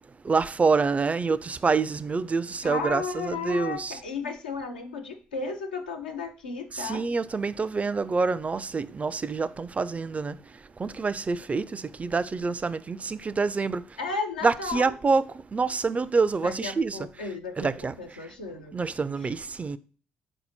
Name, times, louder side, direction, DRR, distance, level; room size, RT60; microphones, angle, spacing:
voice 1, 0.2-4.0 6.7-14.0 14.4-17.0 17.6-17.9 18.7-19.8, right 4 dB, 30° right, 0.3 m, -27 dB
voice 2, 2.6-7.0 14.0-14.9 16.4-17.7 18.0-18.8 19.2-19.3, left 4 dB, 90° left, 0.5 m, -34 dB
4.1 x 2.8 x 4.0 m
hypercardioid pair, 45°, 5 cm